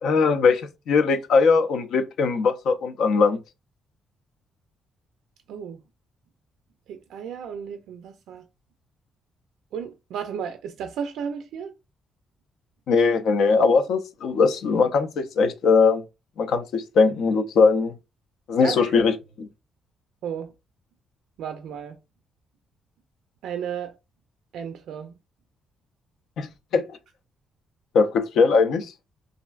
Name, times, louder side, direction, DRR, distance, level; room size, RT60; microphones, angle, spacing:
voice 1, 0.0-3.4 12.9-16.0 16.4-17.9 18.5-19.1 26.4-26.5 26.7-26.8 27.9-28.9, left 4 dB, 75° left, 0.5 m, -20 dB
voice 2, 5.5-5.8 6.9-8.4 9.7-11.7 18.6-19.0 20.2-20.5 21.4-22.0 23.4-23.9 24.5-25.1, right 7 dB, 80° right, 0.3 m, -33 dB
3.2 x 2.5 x 2.3 m
cardioid pair, 90°, 0 cm